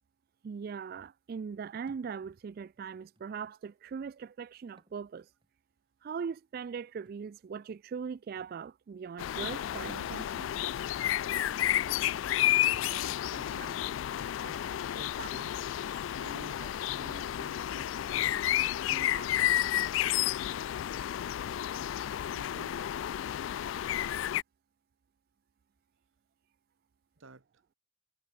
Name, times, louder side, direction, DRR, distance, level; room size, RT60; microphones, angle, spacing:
voice 1, 0.4-5.3 6.0-10.5 13.6-13.7 15.2-15.3 16.6-16.7 19.2-19.3 20.4-20.5 22.8-22.9, right 6 dB, 50° right, 0.3 m, -40 dB
Thump thud, 1.9-2.1 3.2-3.3 4.6-5.0 5.4-5.5 7.1-7.3 8.0-8.1 8.4-8.6 9.8-10.1, right 1 dB, 25° right, 1.8 m, -63 dB
sound 1, 9.2-24.4, left 12 dB, 75° left, 0.3 m, -31 dB
voice 2, 12.6-14.6 14.9-15.6 16.1-16.6 16.9-18.0 18.9-19.3 22.2-22.8 27.2-27.4, right 2 dB, 90° right, 1.4 m, -51 dB
head